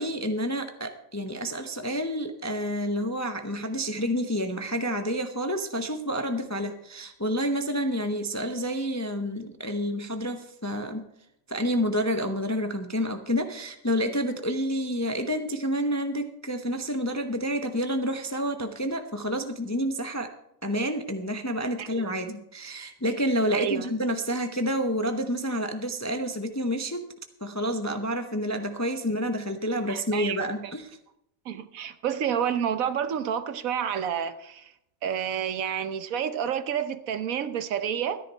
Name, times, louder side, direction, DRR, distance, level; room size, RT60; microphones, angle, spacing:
voice 1, 0.0-11.1 11.5-20.3 20.6-27.1 27.4-31.0, equal, 20° left, 6 dB, 0.5 m, -29 dB
voice 2, 21.8-22.1 23.5-23.9 29.9-30.4 31.5-34.7 35.0-38.2, right 8 dB, 75° right, 11 dB, 1.2 m, -29 dB
13.0 x 10.5 x 4.5 m, 0.79 s
omnidirectional pair, 1.5 m